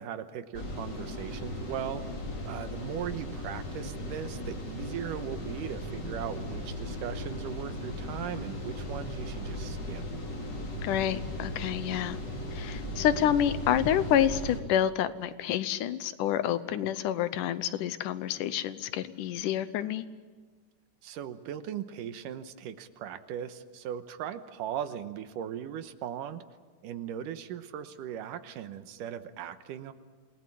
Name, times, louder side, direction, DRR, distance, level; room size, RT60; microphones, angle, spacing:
voice 1, 0.0-2.0 2.5-10.0 21.0-26.4 26.8-29.9, right 9 dB, 90° right, 10 dB, 2.7 m, -38 dB
sound 1, 0.5-14.6, left 1 dB, 35° left, 3.8 m, -37 dB
voice 2, 10.8-12.2 12.5-20.0, left 10 dB, 80° left, 13 dB, 2.4 m, -28 dB
27.5 x 18.5 x 8.6 m, 1.4 s
omnidirectional pair, 3.7 m